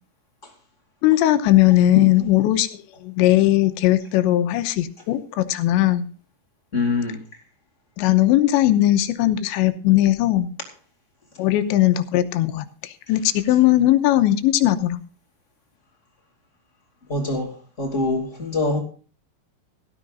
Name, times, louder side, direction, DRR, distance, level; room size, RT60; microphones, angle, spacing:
voice 1, 1.0-6.1 8.0-10.5 11.4-15.0, left 14 dB, 90° left, 9 dB, 3.2 m, -19 dB
voice 2, 6.7-7.2 17.1-18.8, left 3 dB, 20° left, 2 dB, 2.1 m, -24 dB
17.0 x 13.0 x 2.6 m, 0.39 s
omnidirectional pair, 5.1 m